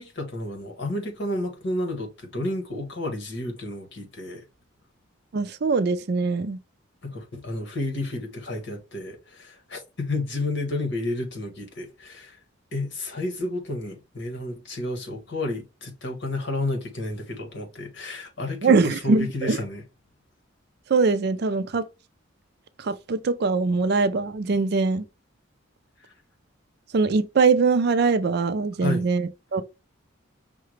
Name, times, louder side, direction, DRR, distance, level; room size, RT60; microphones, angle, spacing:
voice 1, 0.0-4.4 7.0-12.4 12.7-19.8 26.0-26.1 28.8-29.1, left 2 dB, 60° left, 1.3 m, -31 dB
voice 2, 5.3-6.6 18.6-19.6 20.9-21.8 22.8-25.0 26.9-29.6, right 4 dB, 50° right, 0.4 m, -22 dB
5.7 x 2.2 x 3.1 m
head